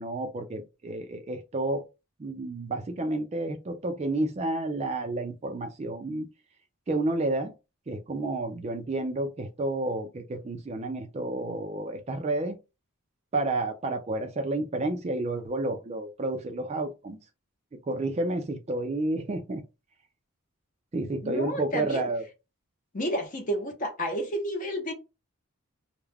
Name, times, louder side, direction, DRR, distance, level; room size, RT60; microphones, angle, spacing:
voice 1, 0.0-1.8 2.2-6.3 6.9-7.5 7.9-12.6 13.3-17.2 17.9-19.6 20.9-22.3, right 2 dB, 30° right, 0.3 m, -30 dB
voice 2, 21.2-22.1 22.9-24.9, equal, 35° left, 0.7 m, -31 dB
2.3 x 2.1 x 3.2 m
head